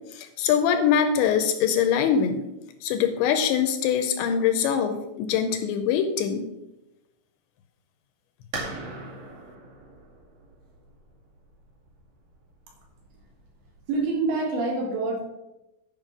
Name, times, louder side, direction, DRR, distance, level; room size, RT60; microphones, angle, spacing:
voice 1, 0.1-2.5 2.8-6.5, left 8 dB, 80° left, 8 dB, 2.7 m, -23 dB
sound 1, 8.5-14.0, right 2 dB, 45° right, 3.1 m, -41 dB
voice 2, 13.9-15.2, right 3 dB, 70° right, -1 dB, 4.1 m, -26 dB
10.5 x 5.4 x 5.9 m, 0.95 s
omnidirectional pair, 5.7 m